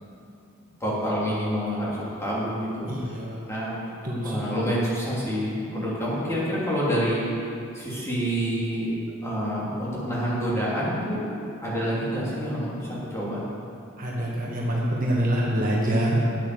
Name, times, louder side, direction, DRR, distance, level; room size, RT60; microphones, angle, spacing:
voice 1, 0.8-2.9 3.5-3.8 4.2-7.2 7.7-8.9 9.2-11.3 11.6-13.4, equal, 15° left, -8 dB, 3.0 m, -27 dB
voice 2, 2.8-3.5 4.0-4.4 14.0-16.3, right 1 dB, 40° right, -4 dB, 1.7 m, -25 dB
9.8 x 8.1 x 6.9 m, 2.5 s
head